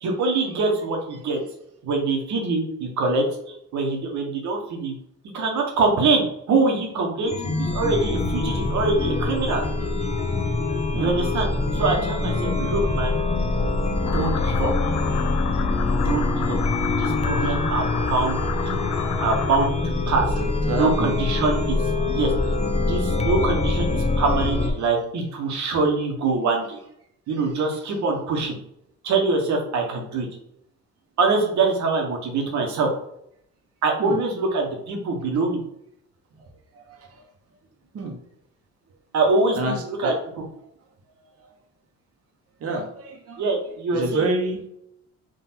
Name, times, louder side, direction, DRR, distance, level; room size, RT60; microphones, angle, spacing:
voice 1, 0.0-1.4 1.8-4.9 5.3-9.6 11.0-11.5 11.7-13.2 14.1-14.7 16.0-16.6 17.0-18.4 18.6-18.8 19.2-20.3 20.7-21.8 22.1-22.5 22.9-26.8 27.3-28.6 29.0-30.3 31.2-32.9 33.8-35.6 39.1-40.1 43.4-44.3, right 3 dB, 70° right, 2 dB, 1.2 m, -24 dB
Chime, 7.2-24.7, left 2 dB, 20° left, 0.6 m, -24 dB
sound 1, 14.0-19.7, left 9 dB, 90° left, 0.5 m, -32 dB
voice 2, 20.7-21.1 34.0-34.2 36.4-36.5 36.7-37.2 37.9-38.1 39.6-40.1 42.6-43.4 43.9-44.7, right 2 dB, 50° right, 2 dB, 1.0 m, -28 dB
3.9 x 2.6 x 4.3 m, 0.75 s
cardioid pair, 90°, 30 cm